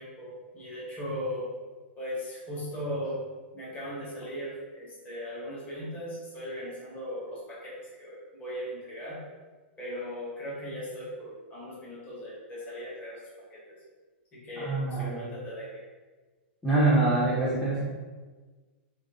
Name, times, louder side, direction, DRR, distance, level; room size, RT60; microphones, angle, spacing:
voice 1, 0.0-1.5 2.0-3.2 3.5-9.2 9.8-13.8 14.3-15.8, equal, 20° left, -8 dB, 1.4 m, -38 dB
voice 2, 14.6-15.3 16.6-17.8, right 2 dB, 5° left, -8 dB, 0.6 m, -25 dB
4.8 x 2.5 x 2.6 m, 1.4 s
hypercardioid pair, 135°, 7 cm